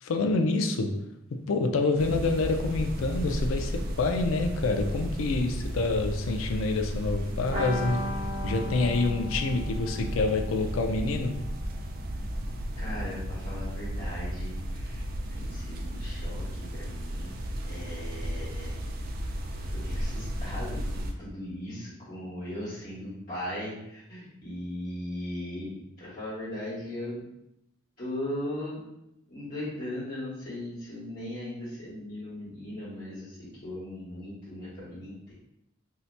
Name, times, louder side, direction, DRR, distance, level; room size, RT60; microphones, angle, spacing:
voice 1, 0.0-1.0 1.3-8.1 8.4-11.4, left 3 dB, 90° left, 5 dB, 0.4 m, -27 dB
sound 1, 2.0-21.1, equal, 45° right, 0.3 m, -34 dB
sound 2, 7.5-13.1 13.3-13.4 13.7-13.8, left 1 dB, 25° right, 0.9 m, -38 dB
voice 2, 12.7-17.3 17.7-18.8 19.7-25.7 26.0-27.2 28.0-28.8 29.3-35.3, left 1 dB, 45° left, -12 dB, 1.2 m, -38 dB
2.7 x 2.1 x 4.1 m, 0.83 s
head